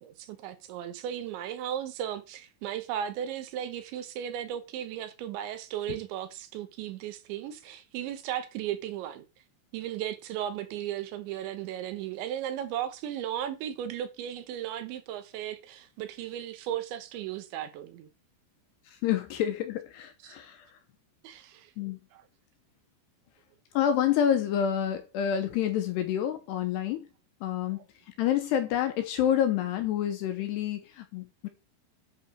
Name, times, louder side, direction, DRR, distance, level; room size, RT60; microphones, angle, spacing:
voice 1, 0.0-9.3 9.7-18.1 20.2-20.4 21.2-21.7 22.1-22.3 27.7-27.8, right 10 dB, 75° right, 3.2 m, -36 dB
voice 2, 18.9-20.7 21.8-22.0 23.7-27.1 27.4-27.8 28.1-31.5, left 9 dB, 75° left, 2.7 m, -28 dB
10.5 x 4.2 x 6.1 m
omnidirectional pair, 5.6 m